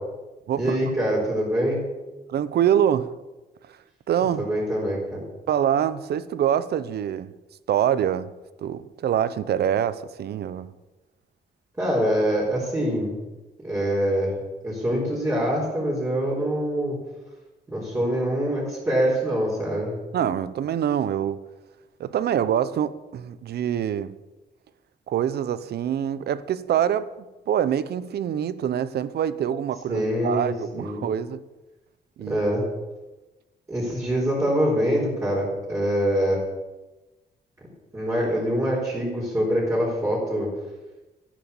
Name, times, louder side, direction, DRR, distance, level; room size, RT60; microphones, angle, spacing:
voice 1, 0.6-1.8 4.4-5.3 11.8-13.1 13.6-14.3 14.6-17.0 17.7-20.0 29.9-31.0 32.3-32.6 33.7-36.4 37.9-40.5, equal, 15° right, 4.3 m, -24 dB
voice 2, 2.3-3.2 4.1-4.5 5.5-7.3 7.7-8.3 8.6-10.7 20.1-21.5 22.0-24.2 25.1-27.1 27.5-31.4 32.2-32.4, right 9 dB, 75° right, 0.8 m, -25 dB
13.5 x 11.5 x 7.2 m
wide cardioid pair, 165°, 17 cm